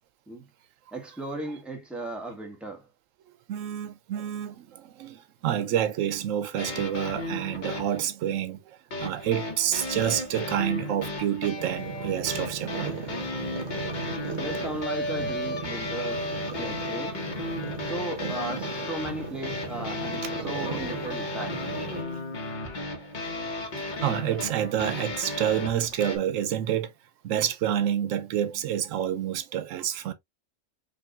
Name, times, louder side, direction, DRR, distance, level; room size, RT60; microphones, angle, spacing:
voice 1, 0.9-2.9 14.4-17.2 17.8-21.7, right 1 dB, ahead, 1.1 m, -36 dB
voice 2, 3.5-8.6 9.0-13.0 22.7-22.8 23.7-26.9 27.2-30.1, right 10 dB, 85° right, 1.0 m, -28 dB
sound 1, 6.6-8.0 8.9-26.2, left 2 dB, 40° left, 1.0 m, -34 dB
sound 2, 11.6-22.0, right 4 dB, 65° right, 1.3 m, -37 dB
5.1 x 2.7 x 2.3 m
omnidirectional pair, 1.3 m